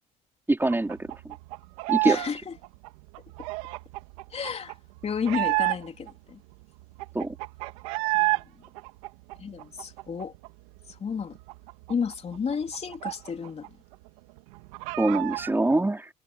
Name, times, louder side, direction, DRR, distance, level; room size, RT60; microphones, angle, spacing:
voice 1, 0.5-1.0 1.9-2.2 7.1-7.3 15.0-16.1, right 2 dB, 10° right, 4.1 m, -24 dB
sound 1, 0.7-2.3 2.6-6.1 6.5-6.6 6.8-8.4 8.8-10.5 10.8-10.9 11.2-13.7 13.9-14.0 14.4-15.5, right 24 dB, 85° right, 1.7 m, -30 dB
voice 2, 2.0-2.6 4.3-4.7 5.0-6.4 8.1-8.4 9.4-10.3 10.9-11.4 11.9-13.7, left 6 dB, 35° left, 3.4 m, -32 dB
supercardioid pair, 80°, 18 cm